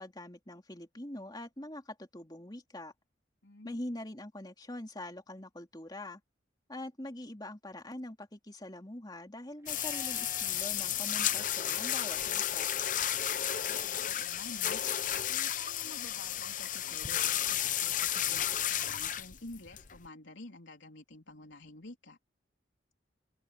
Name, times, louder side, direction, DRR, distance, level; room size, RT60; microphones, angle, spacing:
voice 1, 0.0-2.9 3.6-6.2 6.7-12.7, left 1 dB, 20° left, 3.1 m, -44 dB
voice 2, 3.4-3.8 13.6-14.8 15.3-22.2, left 2 dB, 75° left, 3.9 m, -50 dB
Livestock farm animals working animals, 9.6-10.7 13.5-14.5, right 3 dB, 15° right, 3.6 m, -52 dB
sound 1, 9.7-20.1, left 11 dB, 45° left, 0.8 m, -33 dB
open air
head